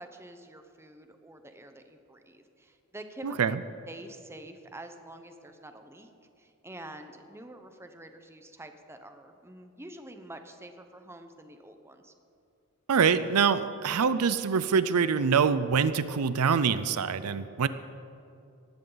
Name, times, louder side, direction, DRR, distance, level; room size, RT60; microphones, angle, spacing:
voice 1, 0.0-3.4 3.9-6.1 6.4-12.1, right 1 dB, 10° right, 7 dB, 0.9 m, -47 dB
voice 2, 3.2-3.6 12.9-17.7, right 6 dB, 80° right, 14 dB, 0.5 m, -25 dB
18.5 x 14.5 x 4.0 m, 2.6 s
head